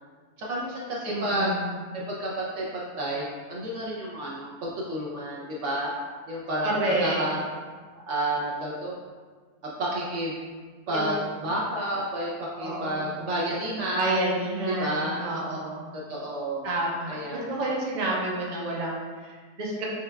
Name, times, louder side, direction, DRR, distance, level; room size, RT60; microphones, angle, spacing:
voice 1, 0.4-1.6 1.9-5.9 6.3-6.7 7.0-7.4 8.1-8.9 9.8-10.3 10.9-14.2 14.7-15.4 15.9-16.7 17.1-17.5, right 1 dB, 65° right, -5 dB, 0.9 m, -30 dB
voice 2, 1.1-1.8 6.6-7.2 10.9-11.1 12.6-13.3 13.9-15.9 16.6-19.9, right 1 dB, 40° right, -4 dB, 0.6 m, -29 dB
6.2 x 2.3 x 2.2 m, 1.5 s
omnidirectional pair, 1.5 m